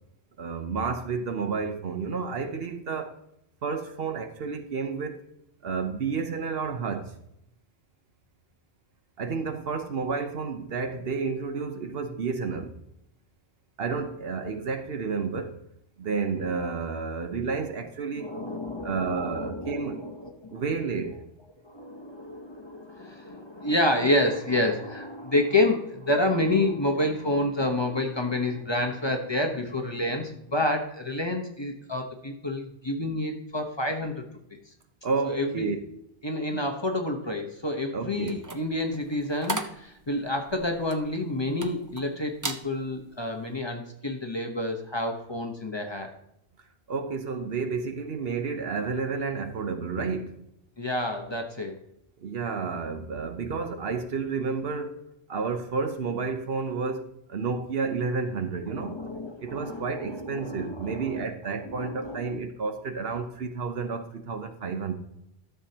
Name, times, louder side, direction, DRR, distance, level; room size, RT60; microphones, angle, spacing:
voice 1, 0.4-3.1 3.6-5.2 5.6-7.1 9.2-12.7 13.8-15.6 16.0-18.4 18.8-20.0 20.5-21.2 35.0-35.8 36.5-36.6 37.9-38.3 46.9-50.4 52.2-55.0 55.3-59.0 59.4-64.9, right 5 dB, 65° right, 1.0 m, -31 dB
voice 2, 18.1-20.6 21.6-34.1 35.2-35.7 36.2-46.1 50.8-51.8 58.8-61.2 61.6-62.3, left 1 dB, 25° left, 1.0 m, -29 dB
sound 1, 38.2-42.0 42.3-42.7 43.1-43.4, right 2 dB, 25° right, 0.5 m, -36 dB
12.5 x 7.0 x 2.9 m
omnidirectional pair, 1.1 m